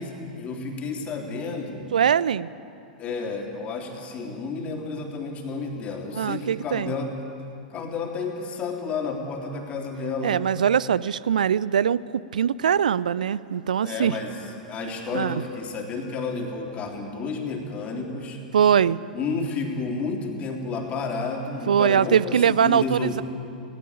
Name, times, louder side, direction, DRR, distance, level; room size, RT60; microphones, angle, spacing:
voice 1, 0.0-1.9 3.0-7.1 7.7-10.4 13.8-14.4 14.7-18.4 19.1-23.2, left 4 dB, 25° left, 1 dB, 3.5 m, -31 dB
voice 2, 1.9-2.5 6.2-6.9 10.2-14.2 15.1-15.4 18.5-19.0 21.7-23.2, right 8 dB, 65° right, 20 dB, 0.5 m, -22 dB
19.0 x 18.0 x 8.8 m, 2.7 s
figure-of-eight pair, 100°, 5 cm